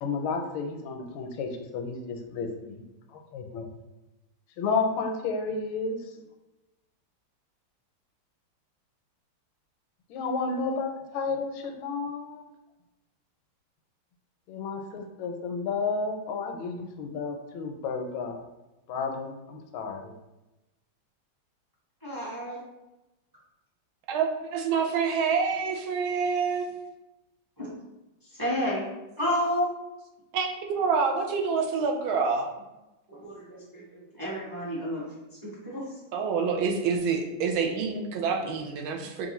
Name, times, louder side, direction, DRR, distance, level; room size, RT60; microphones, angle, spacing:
voice 1, 0.0-2.8 3.3-3.6 4.6-6.0 10.1-12.5 14.5-18.4 18.9-20.1, left 4 dB, 85° left, 5 dB, 1.4 m, -31 dB
voice 2, 22.0-22.6 27.6-27.7 28.3-28.9 29.2-29.7 33.1-35.0 35.4-35.9, equal, 20° right, -7 dB, 0.6 m, -31 dB
voice 3, 24.1-26.7 30.3-32.5 36.1-39.3, right 5 dB, 85° right, 2 dB, 1.5 m, -27 dB
5.3 x 2.5 x 3.0 m, 1.0 s
omnidirectional pair, 2.2 m